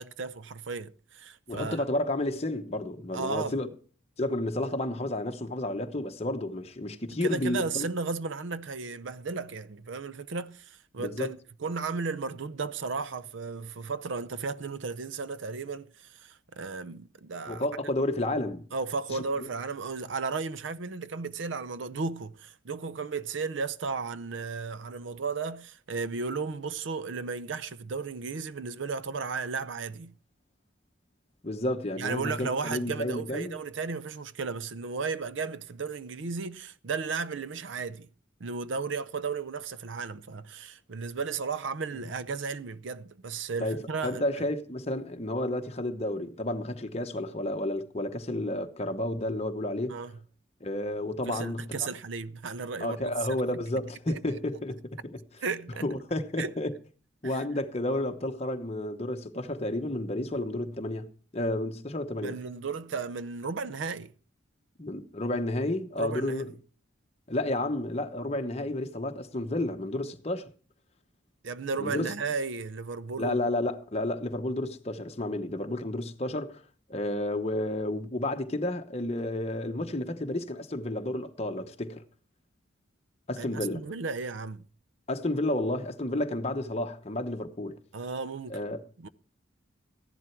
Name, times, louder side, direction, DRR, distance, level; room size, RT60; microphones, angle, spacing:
voice 1, 0.0-1.9 3.1-3.6 7.2-17.6 18.7-30.1 32.0-38.1 38.4-44.5 49.9-50.1 51.3-53.6 54.1-54.4 55.4-55.9 56.4-56.5 57.2-57.4 62.2-64.1 66.0-66.5 71.4-73.4 83.4-84.6 87.9-88.6 89.0-89.1, right 4 dB, 70° right, 0.6 m, -34 dB
voice 2, 1.5-3.7 4.2-7.9 11.0-11.3 17.5-18.6 19.1-19.5 31.4-33.5 43.6-50.0 50.6-51.7 52.8-55.2 55.8-56.8 57.2-61.1 61.3-62.3 64.8-66.5 67.3-70.5 71.8-72.1 73.2-76.6 76.9-82.0 83.3-83.8 85.1-87.8 88.5-88.8, left 1 dB, 30° left, 1.0 m, -31 dB
14.5 x 11.0 x 4.5 m
head